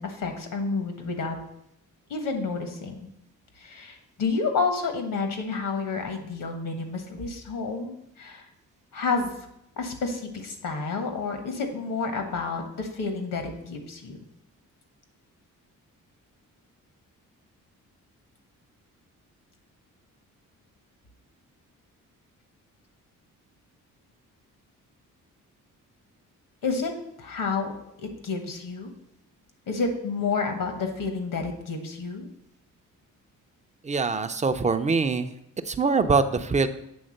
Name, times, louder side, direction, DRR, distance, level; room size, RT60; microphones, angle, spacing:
voice 1, 0.0-1.4 2.1-2.9 3.6-8.5 8.9-9.4 9.8-14.2 26.6-26.9 27.2-27.7 28.0-28.9 29.7-32.3, left 4 dB, 75° left, 5 dB, 1.5 m, -30 dB
voice 2, 33.8-35.3 35.7-36.7, right 4 dB, 20° right, 10 dB, 0.5 m, -23 dB
7.9 x 3.5 x 6.5 m, 0.79 s
cardioid pair, 100°, 32 cm